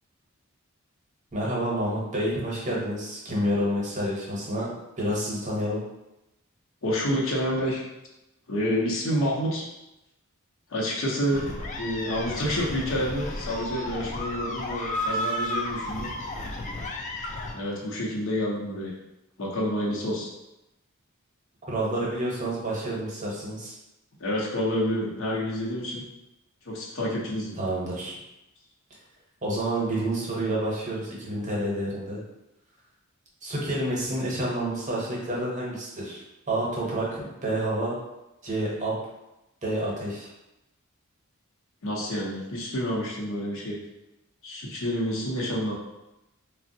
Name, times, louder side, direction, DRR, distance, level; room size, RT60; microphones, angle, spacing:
voice 1, 1.3-4.7 5.0-5.8 21.7-23.7 27.6-28.2 29.4-32.2 33.4-36.2 36.5-38.0 38.4-38.9 39.6-40.3, right 1 dB, 35° right, -5 dB, 0.8 m, -29 dB
voice 2, 6.8-7.8 8.5-9.6 10.7-11.5 11.8-16.1 17.5-18.9 19.4-20.3 24.2-26.0 26.7-27.5 41.8-43.8 44.4-45.7, equal, 65° left, -3 dB, 0.7 m, -28 dB
sound 1, 11.3-17.5, left 1 dB, 35° left, 0.3 m, -33 dB
3.3 x 2.0 x 2.6 m, 0.94 s
head